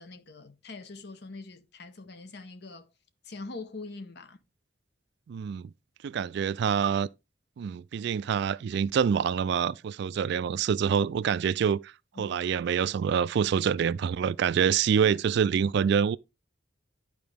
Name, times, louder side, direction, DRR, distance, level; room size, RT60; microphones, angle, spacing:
voice 1, 0.0-2.9 3.3-4.4 12.2-12.4 15.0-15.4, left 3 dB, 60° left, 0.9 m, -43 dB
voice 2, 5.3-5.7 6.0-7.1 7.6-11.9 12.2-16.2, right 7 dB, 65° right, 0.3 m, -26 dB
11.0 x 4.9 x 3.4 m
head